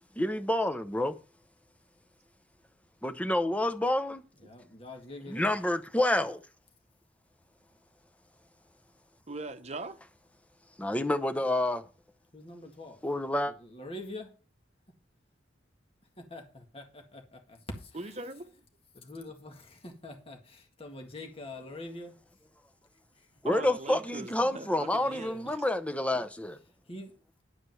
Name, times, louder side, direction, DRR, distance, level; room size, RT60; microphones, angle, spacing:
voice 1, 0.2-1.2 3.0-4.2 5.3-6.4 10.8-11.9 13.0-13.5 23.4-26.6, left 1 dB, 5° left, 0.8 m, -28 dB
voice 2, 4.4-5.5 12.3-13.0 13.5-14.3 16.2-18.1 18.9-22.2 23.2-23.3 24.9-25.5 26.9-27.1, left 1 dB, 30° left, 1.7 m, -45 dB
voice 3, 9.3-10.0 17.9-18.6 23.4-25.6, right 2 dB, 35° right, 1.0 m, -41 dB
11.0 x 5.1 x 7.7 m
head